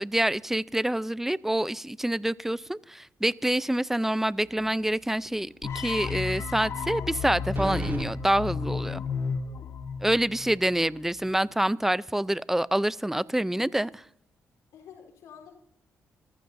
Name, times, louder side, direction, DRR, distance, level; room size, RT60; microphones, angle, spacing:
voice 1, 0.0-9.0 10.0-14.0, right 1 dB, 5° right, 0.5 m, -27 dB
sound 1, 4.4-4.9 5.3-5.4 7.5-8.1, right 2 dB, 40° right, 2.2 m, -34 dB
sound 2, 5.6-10.7, left 6 dB, 70° left, 1.3 m, -33 dB
voice 2, 8.7-9.7 14.7-15.6, left 7 dB, 85° left, 3.8 m, -51 dB
25.0 x 15.0 x 2.7 m
cardioid pair, 70°, 5 cm